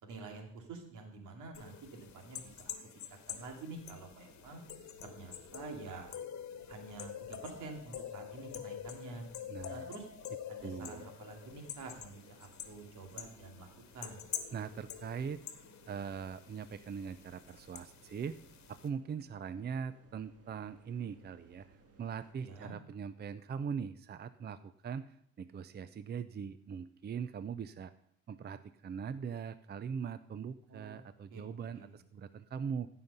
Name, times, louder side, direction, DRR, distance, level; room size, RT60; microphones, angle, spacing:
voice 1, 0.0-4.6 5.0-6.1 6.7-9.3 9.7-10.1 10.5-13.7 13.9-14.2 22.4-22.7 30.7-31.0 31.3-31.9, right 3 dB, 85° right, 3 dB, 2.5 m, -48 dB
sound 1, 1.5-18.9, left 9 dB, 65° left, 1.2 m, -47 dB
sound 2, 4.1-22.3, right 3 dB, 50° right, 1.9 m, -63 dB
voice 2, 9.5-9.9 10.6-11.1 14.5-15.4 15.9-18.4 18.7-21.7 22.0-27.9 28.3-32.9, right 6 dB, 35° right, 13 dB, 0.5 m, -41 dB
15.5 x 5.8 x 5.3 m, 0.68 s
cardioid pair, 90°, 30 cm